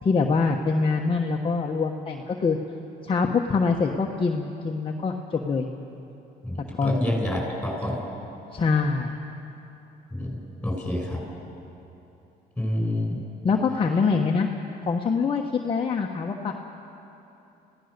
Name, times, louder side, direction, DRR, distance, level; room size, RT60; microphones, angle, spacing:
voice 1, 0.0-2.6 3.0-5.7 6.7-7.0 8.5-9.1 13.4-14.5 14.8-16.5, left 4 dB, 30° left, 1 dB, 1.2 m, -24 dB
voice 2, 6.4-8.0 10.1-11.2 12.6-13.2, left 1 dB, 5° left, 0 dB, 6.9 m, -28 dB
29.0 x 16.0 x 6.8 m, 2.9 s
cardioid pair, 110°, 17 cm